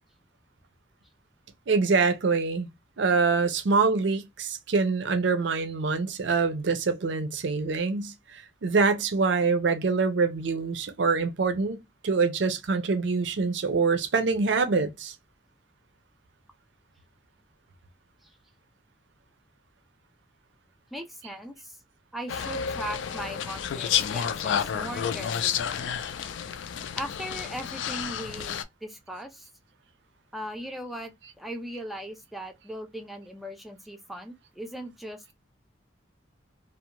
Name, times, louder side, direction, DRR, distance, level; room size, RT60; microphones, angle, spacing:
voice 1, 1.7-2.7 3.0-11.8 12.0-15.1, right 4 dB, 75° right, 0.5 m, -25 dB
voice 2, 20.9-21.8 22.1-25.6 27.0-29.5 30.3-31.1 31.4-35.3, equal, ahead, 0.4 m, -38 dB
sound 1, 22.3-28.6, left 8 dB, 80° left, 0.3 m, -30 dB
2.5 x 2.1 x 2.8 m
head